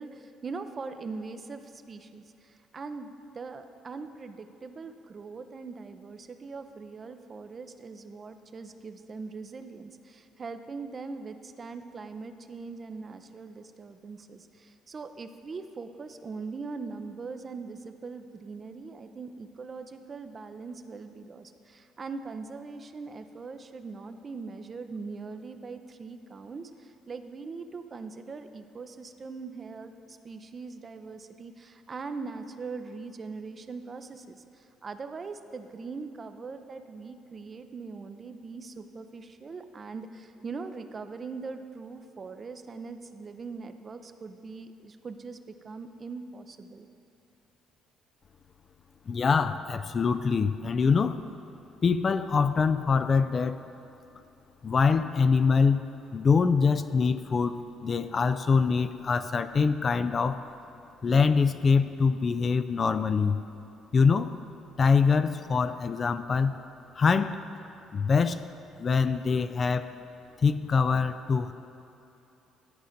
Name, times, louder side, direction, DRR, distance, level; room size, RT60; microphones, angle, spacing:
voice 1, 0.0-45.4 45.6-46.9, right 4 dB, 40° right, 8 dB, 0.5 m, -41 dB
voice 2, 49.1-51.2 51.8-53.6 54.6-60.4 61.0-63.4 63.9-64.4 64.8-66.6 66.9-67.4 67.9-68.4 68.8-69.9 70.4-71.5, left 5 dB, 45° left, 11 dB, 0.4 m, -24 dB
11.5 x 5.0 x 5.1 m, 2.9 s
hypercardioid pair, 55°, 0 cm